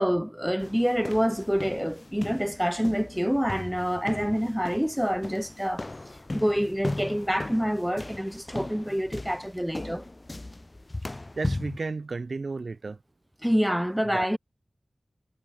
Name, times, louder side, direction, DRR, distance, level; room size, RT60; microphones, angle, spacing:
voice 1, 0.0-5.8 6.3-10.0 13.4-14.4, equal, 5° right, 1.0 m, -27 dB
sound 1, 0.6-11.8, left 2 dB, 35° left, 1.7 m, -37 dB
voice 2, 11.4-13.0 14.0-14.3, right 3 dB, 70° right, 1.1 m, -33 dB
wide cardioid pair, 50°, 0 cm